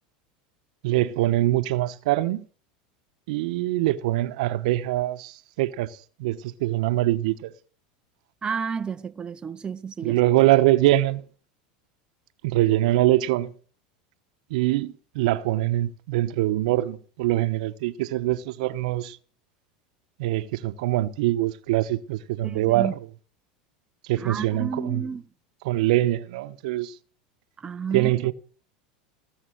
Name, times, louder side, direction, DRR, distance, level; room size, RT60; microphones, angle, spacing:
voice 1, 0.8-2.4 3.3-7.5 10.0-11.2 12.4-13.5 14.5-19.2 20.2-23.0 24.0-25.1 25.6-26.9 27.9-28.3, right 16 dB, 75° right, 1.0 m, -23 dB
voice 2, 8.4-10.2 22.4-22.9 24.2-25.2 27.6-28.1, right 6 dB, 20° right, 0.7 m, -31 dB
19.0 x 8.2 x 6.5 m
hypercardioid pair, 105°, 4 cm